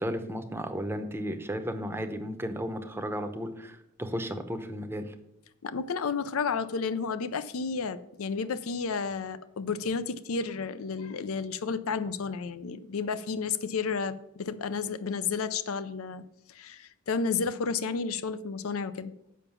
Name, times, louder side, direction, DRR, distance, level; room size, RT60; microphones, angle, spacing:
voice 1, 0.0-5.1, equal, 10° right, 7 dB, 0.7 m, -34 dB
voice 2, 5.6-19.1, left 5 dB, 80° left, 14 dB, 0.5 m, -32 dB
7.2 x 5.8 x 7.0 m, 0.81 s
head